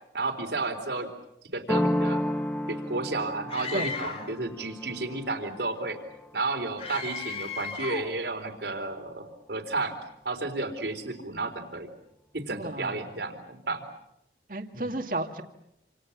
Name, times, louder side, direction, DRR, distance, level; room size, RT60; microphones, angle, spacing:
voice 1, 0.1-1.1 1.5-2.2 2.7-6.0 6.3-9.9 10.3-11.9 12.5-13.8 14.7-14.9, right 3 dB, 75° right, 6 dB, 3.9 m, -32 dB
sound 1, 1.7-7.2, left 1 dB, 5° left, 1.3 m, -32 dB
Screaming, 3.5-4.4 6.8-8.1, left 5 dB, 30° left, 2.2 m, -35 dB
voice 2, 12.5-13.0 14.5-15.4, right 2 dB, 50° right, 5 dB, 2.3 m, -33 dB
28.0 x 28.0 x 7.3 m, 0.80 s
head